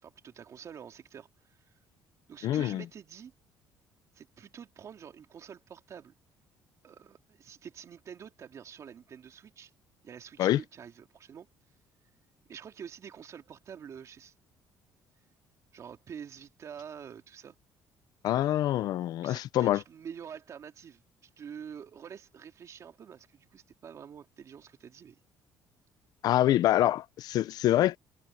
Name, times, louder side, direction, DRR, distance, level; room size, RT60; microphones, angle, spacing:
voice 1, 0.0-1.7 2.3-3.3 4.1-6.1 6.8-9.7 10.0-11.5 12.5-14.3 15.7-17.6 19.1-25.2, right 7 dB, 45° right, 2.8 m, -47 dB
voice 2, 2.4-2.8 10.4-10.6 18.2-19.8 26.2-28.0, left 13 dB, 65° left, 0.7 m, -25 dB
cardioid pair, 115°, 7 cm